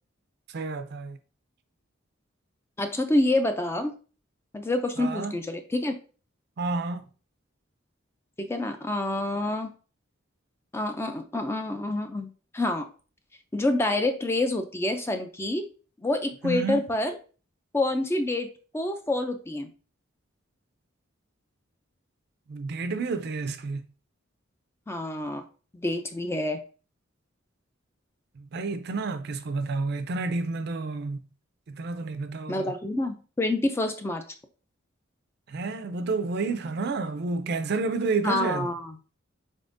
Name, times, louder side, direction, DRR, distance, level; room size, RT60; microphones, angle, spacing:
voice 1, 0.5-1.2 5.0-5.3 6.6-7.0 16.4-16.8 22.5-23.8 28.5-31.2 31.7-32.6 35.5-38.7, right 3 dB, 55° right, 0.4 m, -30 dB
voice 2, 2.8-3.9 4.5-6.0 8.4-9.8 10.7-12.9 13.5-15.7 16.0-17.2 17.7-19.7 24.9-25.4 25.7-26.6 32.5-34.2 38.2-39.0, left 2 dB, 15° left, 0.3 m, -27 dB
4.1 x 3.5 x 2.5 m
head